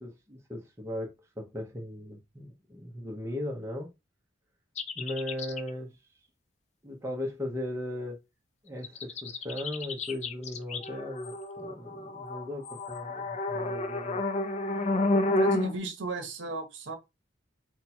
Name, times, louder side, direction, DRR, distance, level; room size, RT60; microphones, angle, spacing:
voice 1, 0.0-3.9 5.0-5.9 6.8-8.2 8.6-14.2, left 1 dB, 15° right, 0.7 m, -37 dB
sound 1, 4.8-5.7 8.8-15.7, left 2 dB, 35° left, 0.4 m, -30 dB
voice 2, 15.4-17.0, right 3 dB, 70° right, 0.8 m, -35 dB
2.9 x 2.2 x 4.2 m
head